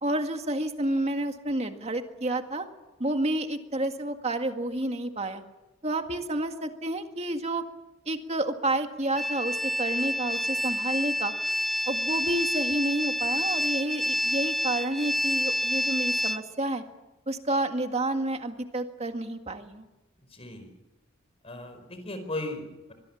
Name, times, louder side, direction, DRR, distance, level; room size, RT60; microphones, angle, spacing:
voice 1, 0.0-2.7 3.0-5.4 5.8-7.6 8.1-11.3 11.9-16.8 17.3-19.9, right 1 dB, 30° right, 6 dB, 1.9 m, -30 dB
sound 1, 9.2-16.4, equal, ahead, 0.7 m, -28 dB
voice 2, 20.3-20.7 21.4-22.9, left 2 dB, 30° left, 8 dB, 4.8 m, -37 dB
25.0 x 20.0 x 7.2 m, 1.0 s
head